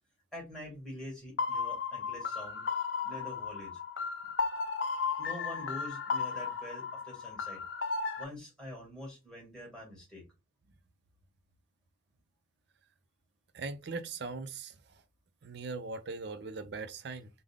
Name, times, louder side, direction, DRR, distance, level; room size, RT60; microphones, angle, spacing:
voice 1, 0.3-2.6 3.0-3.7 5.2-7.6 8.2-10.2, left 1 dB, 5° left, 1.7 m, -45 dB
sound 1, 1.4-8.2, left 5 dB, 65° left, 0.4 m, -35 dB
voice 2, 13.5-14.7 15.4-17.3, right 4 dB, 55° right, 0.5 m, -40 dB
3.6 x 2.1 x 3.5 m
head